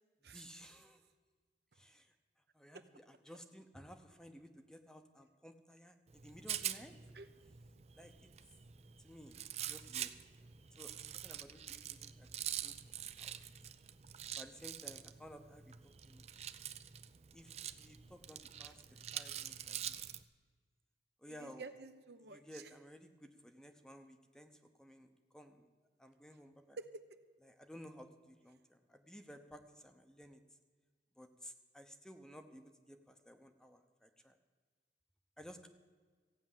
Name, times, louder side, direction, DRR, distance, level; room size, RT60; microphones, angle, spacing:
voice 1, 0.3-1.0 1.7-2.1 2.5-6.9 7.9-8.3 9.0-10.1 10.8-12.3 12.6-12.8 13.2-13.4 14.4-16.2 17.3-18.8 19.1-20.0 21.2-21.7 22.3-24.5 24.8-25.7 26.0-26.8 27.4-30.4 31.2-34.4 35.4-35.7, equal, 5° left, 7 dB, 0.8 m, -56 dB
Rattle, 6.1-20.2, right 10 dB, 35° right, 0.5 m, -46 dB
voice 2, 21.3-22.7 26.8-27.2, right 4 dB, 65° right, 9 dB, 0.9 m, -51 dB
15.0 x 9.1 x 7.4 m, 1.5 s
head